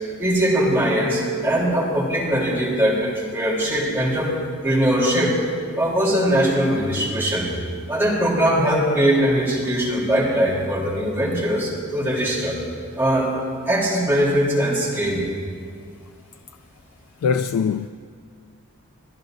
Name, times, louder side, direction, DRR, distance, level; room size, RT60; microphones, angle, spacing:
voice 1, 0.2-4.3 4.6-5.3 5.8-7.5 7.9-12.6 12.9-13.3 13.6-15.2, equal, 10° right, 3.4 m, -21 dB
voice 2, 17.2-17.9, left 6 dB, 80° left, 0.3 m, -21 dB
27.0 x 12.0 x 2.7 m
head